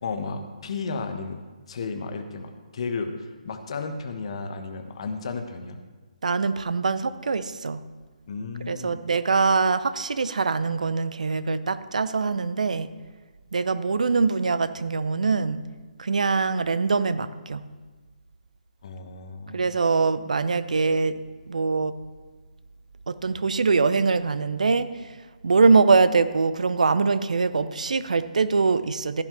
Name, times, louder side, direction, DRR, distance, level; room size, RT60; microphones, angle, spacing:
voice 1, 0.0-1.4 1.7-5.8 8.3-9.0 18.8-19.6, left 4 dB, 45° left, 7 dB, 1.3 m, -33 dB
voice 2, 6.2-7.8 8.7-12.9 13.5-15.6 16.0-17.6 19.5-21.2 21.5-21.9 23.1-25.2 25.4-29.2, right 4 dB, 60° right, 14 dB, 0.7 m, -23 dB
15.5 x 11.0 x 3.3 m, 1.3 s
figure-of-eight pair, 140°, 4 cm